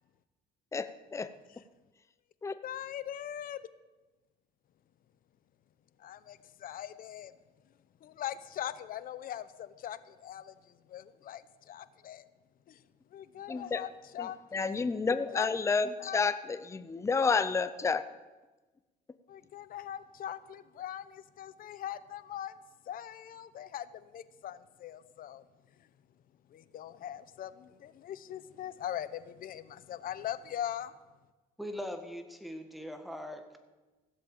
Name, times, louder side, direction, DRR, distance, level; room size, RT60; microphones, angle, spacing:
voice 1, 0.7-1.3 2.4-2.5 13.5-13.8 14.2-18.0, left 4 dB, 15° left, 12 dB, 0.6 m, -30 dB
voice 2, 2.6-3.7 6.0-7.3 8.0-12.2 12.7-12.8 13.1-14.7 15.3-15.7 16.0-16.2 19.3-22.5 22.9-25.4 26.5-30.9, left 11 dB, 55° left, 15 dB, 0.8 m, -41 dB
voice 3, 31.6-33.6, equal, ahead, 6 dB, 1.7 m, -41 dB
16.0 x 7.7 x 7.2 m, 1.2 s
cardioid pair, 110°, 17 cm